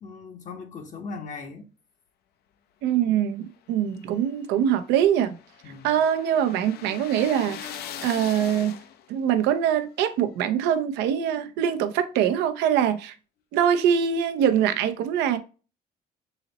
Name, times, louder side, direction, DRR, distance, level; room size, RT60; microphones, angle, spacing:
voice 1, 0.0-1.7 5.6-6.0, left 4 dB, 45° left, 0.8 m, -39 dB
voice 2, 2.8-5.4 5.8-8.7 9.1-13.1 13.5-15.4, right 9 dB, 90° right, 0.6 m, -23 dB
sound 1, 3.7-9.2, left 9 dB, 70° left, 0.5 m, -40 dB
4.0 x 3.0 x 3.9 m
cardioid pair, 110°, 17 cm